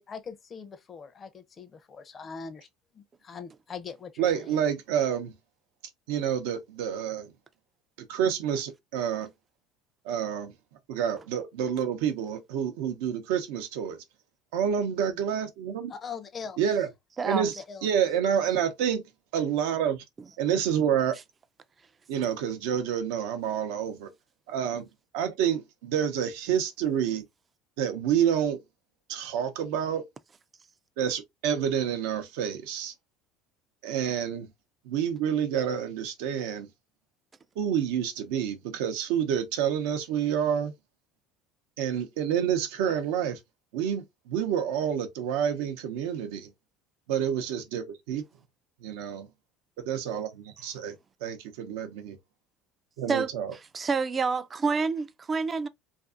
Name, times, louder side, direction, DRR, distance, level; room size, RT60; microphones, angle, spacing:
voice 1, 0.1-2.7 2.9-4.6 15.9-16.6 17.6-17.9, left 6 dB, 35° left, 0.5 m, -41 dB
voice 2, 4.2-5.3 6.1-7.3 8.1-9.3 10.0-10.5 10.9-14.0 14.5-15.9 16.6-16.9 17.2-17.5 17.8-19.0 19.3-20.0 20.4-21.1 22.1-24.1 24.5-24.9 25.1-27.2 27.8-28.6 29.1-30.0 31.0-32.9 33.8-34.5 34.9-36.7 37.6-40.7 41.8-43.4 43.7-46.5 47.1-48.2 48.8-49.3 49.8-50.9 51.2-52.2 53.0-53.5, right 8 dB, 80° right, 0.6 m, -28 dB
voice 3, 17.2-17.5 53.1-53.3 53.7-55.7, right 4 dB, 30° right, 0.3 m, -27 dB
2.5 x 2.4 x 2.4 m
supercardioid pair, 100°, 0 cm